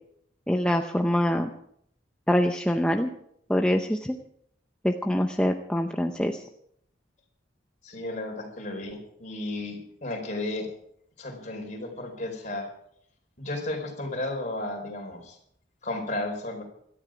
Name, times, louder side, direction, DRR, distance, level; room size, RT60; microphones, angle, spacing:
voice 1, 0.5-1.5 2.3-3.1 3.5-4.2 4.8-6.5, equal, 5° left, 3 dB, 0.7 m, -24 dB
voice 2, 7.8-10.7 11.2-12.6 13.4-15.4 15.8-16.6, left 2 dB, 40° left, 2 dB, 4.4 m, -33 dB
17.0 x 13.0 x 5.0 m, 0.69 s
head